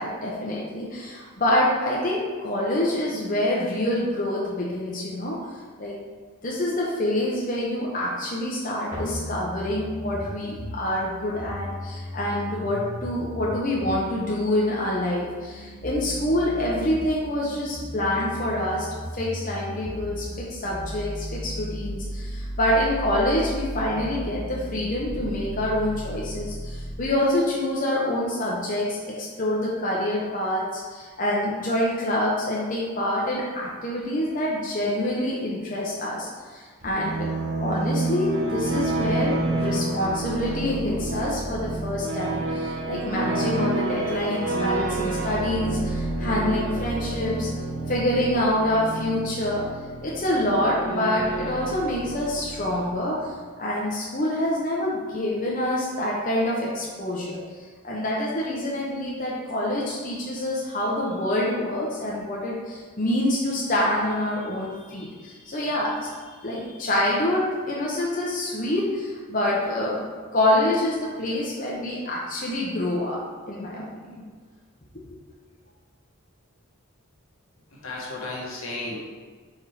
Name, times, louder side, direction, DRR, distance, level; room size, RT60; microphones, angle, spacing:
voice 1, 0.0-5.5 5.8-6.0 6.4-18.9 19.1-37.3 37.6-47.5 47.9-49.7 50.0-70.1 70.3-73.2 73.5-74.2, left 1 dB, 40° left, -5 dB, 0.8 m, -26 dB
sound 1, 8.9-26.9, equal, 35° right, 1.8 m, -36 dB
sound 2, 36.8-53.4, right 2 dB, 80° right, 0.9 m, -29 dB
voice 2, 77.7-79.0, left 2 dB, 75° left, -4 dB, 1.5 m, -33 dB
5.0 x 4.3 x 4.8 m, 1.5 s
head